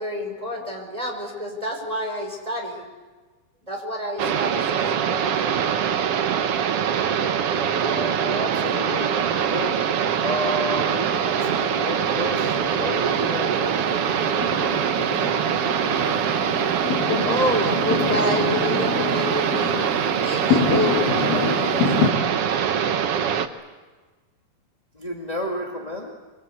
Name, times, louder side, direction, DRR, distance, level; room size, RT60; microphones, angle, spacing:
voice 1, 0.0-2.9 3.7-5.7 16.4-19.8 20.2-22.5, equal, 10° right, 2 dB, 5.1 m, -29 dB
sound 1, 4.2-23.5, right 8 dB, 85° right, 1.3 m, -23 dB
Fireworks, 7.5-22.1, left 5 dB, 70° left, 4.3 m, -29 dB
voice 2, 7.8-9.8 10.2-15.0 24.9-26.1, left 1 dB, 20° left, 0 dB, 1.2 m, -32 dB
25.0 x 24.0 x 8.4 m, 1.3 s
omnidirectional pair, 4.3 m